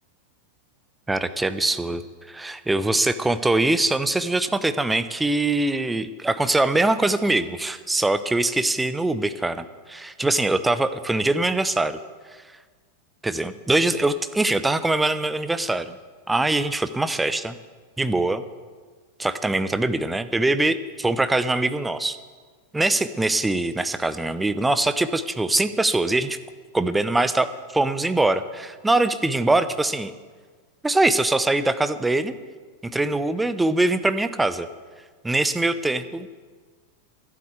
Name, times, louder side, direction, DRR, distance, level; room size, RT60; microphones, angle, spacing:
voice 1, 1.1-2.0 2.3-12.0 13.2-16.0 16.3-17.6 18.0-18.4 19.2-22.2 22.7-26.4 26.7-30.1 30.8-32.3 32.8-34.7 35.2-36.3, right 2 dB, 10° right, 12 dB, 0.7 m, -23 dB
12.0 x 8.5 x 8.1 m, 1.5 s
figure-of-eight pair, 90°, 0 cm